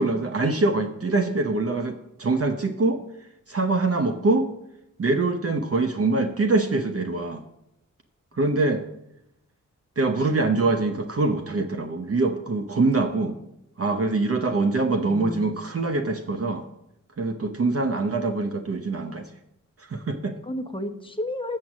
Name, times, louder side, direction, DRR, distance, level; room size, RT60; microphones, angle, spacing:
voice 1, 0.0-4.5 5.0-7.4 8.3-8.8 10.0-13.4 13.8-16.6 17.2-19.3 19.8-20.4, right 3 dB, 45° right, 5 dB, 0.8 m, -24 dB
voice 2, 14.4-15.6 20.3-21.6, left 1 dB, 15° left, 7 dB, 1.1 m, -33 dB
7.6 x 6.2 x 7.3 m, 0.82 s
cardioid pair, 55°, 32 cm